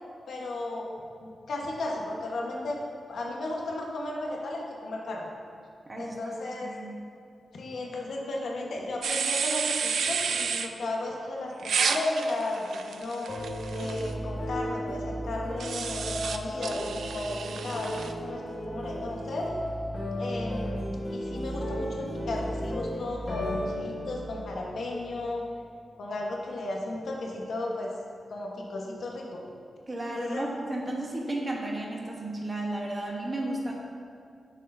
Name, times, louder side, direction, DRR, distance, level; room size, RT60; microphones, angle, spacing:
voice 1, 0.3-0.9 1.2-2.8 3.1-5.3 6.0-6.7 7.5-13.4 13.7-18.4 18.7-19.5 20.2-25.4 26.0-27.9 28.3-29.4 30.1-30.4, left 2 dB, 70° left, -1 dB, 1.1 m, -34 dB
voice 2, 5.9-7.0 29.9-33.7, right 1 dB, 25° right, -1 dB, 1.0 m, -33 dB
sound 1, 9.0-10.7 11.6-14.1 15.6-18.1, right 6 dB, 85° right, 0.4 m, -31 dB
sound 2, 13.3-25.4, equal, 40° left, 1.6 m, -35 dB
11.0 x 6.5 x 2.6 m, 2.4 s
wide cardioid pair, 150°, 0 cm